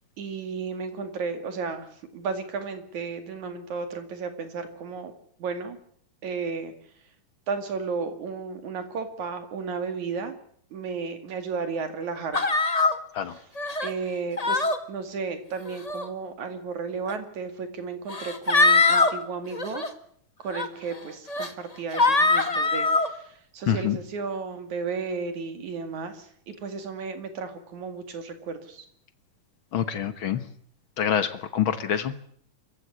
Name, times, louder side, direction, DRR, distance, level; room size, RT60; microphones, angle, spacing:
voice 1, 0.2-5.1 5.4-5.8 6.2-6.7 7.5-10.3 10.7-12.5 13.1-13.5 13.8-19.9 20.4-28.9, right 5 dB, 60° right, 8 dB, 3.5 m, -33 dB
sound 1, 12.3-12.9 13.6-13.9 14.4-14.8 15.7-16.0 17.1-17.2 18.1-19.1 19.5-19.9 20.5-20.7 21.3-21.5 21.9-23.1, left 3 dB, 85° left, 0.3 m, -22 dB
voice 2, 23.7-24.0 29.7-30.4 31.0-32.3, left 8 dB, 60° left, 11 dB, 1.3 m, -26 dB
25.5 x 15.0 x 9.7 m, 0.63 s
omnidirectional pair, 3.8 m